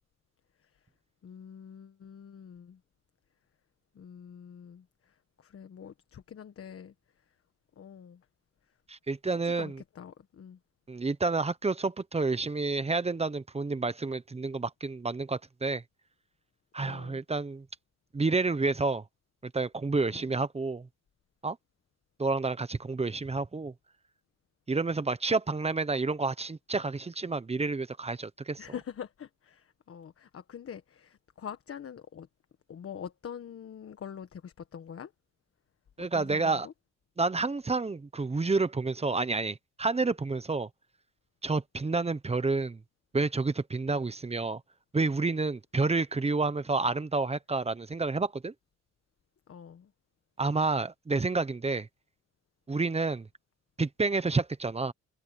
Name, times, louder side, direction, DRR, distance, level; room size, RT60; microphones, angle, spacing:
voice 1, 1.2-2.8 3.9-6.9 7.3-7.4 7.8-8.3 9.3-10.6 16.8-17.2 20.1-20.3 28.6-32.3 32.7-35.1 36.0-36.7 49.5-49.9, left 8 dB, 50° left, 1.4 m, -45 dB
voice 2, 8.9-9.8 10.9-15.8 16.7-17.6 18.1-19.0 19.4-20.9 21.4-21.6 22.2-23.7 24.7-28.6 36.0-36.7 37.2-40.7 41.4-42.8 43.1-44.6 44.9-48.5 50.4-51.9 52.7-53.3 53.8-54.9, right 3 dB, 20° right, 1.1 m, -29 dB
cardioid pair, 90°, 30 cm